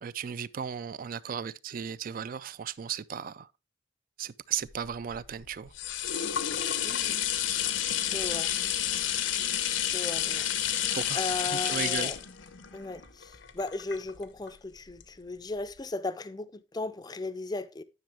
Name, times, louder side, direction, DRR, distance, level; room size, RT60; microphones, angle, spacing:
voice 1, 0.0-3.5 4.2-5.7 10.9-11.2 11.5-12.1, right 7 dB, 45° right, 0.3 m, -35 dB
sound 1, 4.7-14.5 15.0-15.1, left 10 dB, 80° left, 0.9 m, -30 dB
voice 2, 6.8-7.3 8.1-8.9 9.4-9.6 9.8-12.2 12.7-17.8, left 3 dB, 20° left, 0.5 m, -37 dB
10.5 x 6.2 x 3.4 m
head